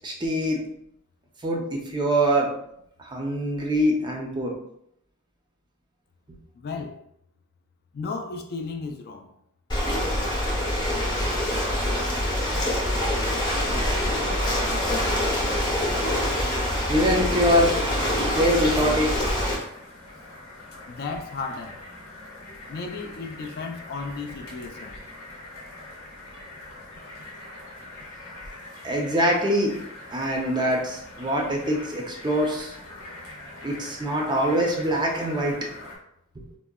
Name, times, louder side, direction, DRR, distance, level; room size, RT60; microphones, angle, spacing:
voice 1, 0.0-0.6 1.4-2.5 3.0-4.5 16.9-17.8 18.2-19.1 28.8-29.7 30.1-32.7 33.6-35.7 36.4-36.5, equal, 20° right, 0.5 m, -24 dB
voice 2, 6.5-7.0 7.9-9.3 20.9-21.8 22.7-25.0, left 4 dB, 45° left, 0.3 m, -34 dB
Ocean, 9.7-19.5, left 1 dB, 20° left, 0.7 m, -25 dB
sound 1, 17.4-36.0, left 2 dB, 80° left, 0.8 m, -43 dB
3.7 x 2.1 x 2.2 m
head